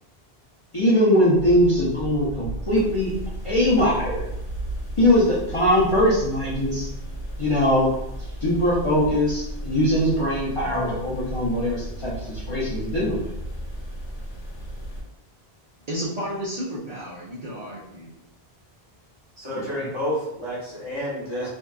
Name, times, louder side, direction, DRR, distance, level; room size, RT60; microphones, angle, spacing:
voice 1, 0.7-3.1 3.4-4.3 5.0-6.9 7.4-7.9 8.2-13.2 19.5-19.9, left 1 dB, 40° left, -8 dB, 0.5 m, -21 dB
sound 1, 1.3-15.0, right 1 dB, 55° left, 0.8 m, -34 dB
voice 2, 15.9-18.1, equal, 45° right, -8 dB, 0.6 m, -32 dB
voice 3, 19.4-21.5, equal, 30° right, -8 dB, 0.9 m, -29 dB
2.7 x 2.3 x 2.3 m, 0.86 s
omnidirectional pair, 1.1 m